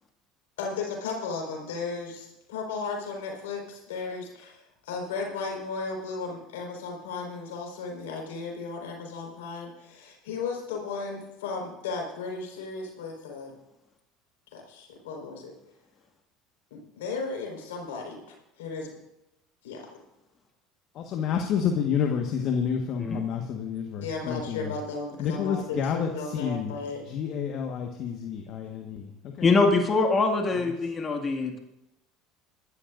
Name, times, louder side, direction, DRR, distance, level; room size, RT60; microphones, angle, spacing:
voice 1, 0.6-13.5 14.5-15.5 16.7-18.2 18.6-18.9 19.6-19.8 24.0-27.0, left 4 dB, 85° left, 1 dB, 4.5 m, -35 dB
voice 2, 20.9-24.7 25.2-29.5 30.5-30.7, left 7 dB, 55° left, 3 dB, 1.4 m, -29 dB
voice 3, 29.4-31.6, left 3 dB, 30° left, 3 dB, 2.0 m, -23 dB
21.0 x 13.0 x 2.6 m, 0.89 s
hypercardioid pair, 85°, 0 cm